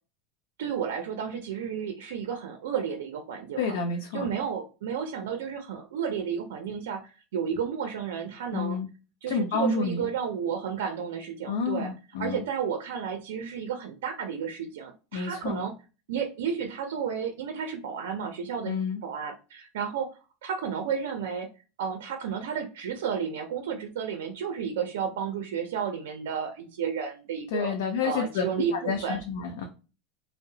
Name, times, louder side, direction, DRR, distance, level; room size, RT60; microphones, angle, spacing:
voice 1, 0.6-3.8 4.1-8.8 9.2-11.9 12.2-15.7 16.1-18.7 19.0-20.1 20.4-21.5 21.8-27.7 28.0-29.2, right 7 dB, 90° right, 5 dB, 0.4 m, -32 dB
voice 2, 3.6-4.3 8.5-8.9 9.3-10.1 11.5-12.4 15.1-15.6 18.6-19.0 27.5-28.4 28.7-29.6, left 5 dB, 80° left, 3 dB, 0.5 m, -29 dB
2.8 x 2.0 x 2.7 m, 0.32 s
supercardioid pair, 145°, 0 cm